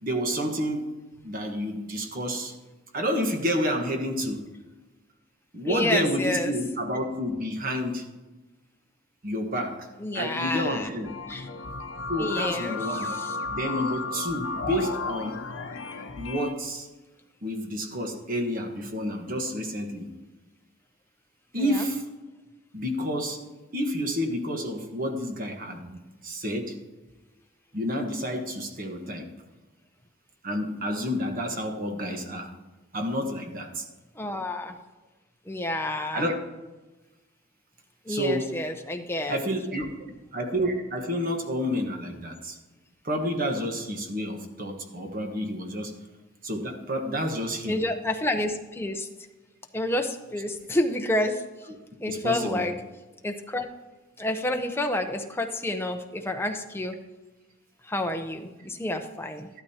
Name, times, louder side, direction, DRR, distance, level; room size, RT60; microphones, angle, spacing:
voice 1, 0.0-0.9 1.2-2.5 2.9-4.4 5.5-8.0 9.2-9.9 10.1-11.1 12.1-13.2 13.5-15.4 16.2-16.9 17.4-20.1 21.5-22.0 22.7-23.4 23.7-26.7 27.7-29.3 30.4-32.5 32.9-33.8 36.1-36.4 38.1-38.5 39.3-40.0 40.3-42.6 43.0-45.9 46.4-47.8 52.1-52.6, equal, 45° right, 4 dB, 1.3 m, -29 dB
voice 2, 5.7-6.5 10.0-10.9 11.3-11.5 12.2-13.4 21.6-21.8 34.2-34.7 35.5-36.3 38.1-39.4 47.7-49.1 49.7-51.4 52.0-52.7 53.2-53.7 54.2-57.0 57.8-59.6, left 1 dB, 10° left, 4 dB, 0.7 m, -29 dB
sound 1, 11.0-16.5, left 3 dB, 75° left, 0.8 m, -33 dB
13.0 x 12.0 x 2.9 m, 1.1 s
head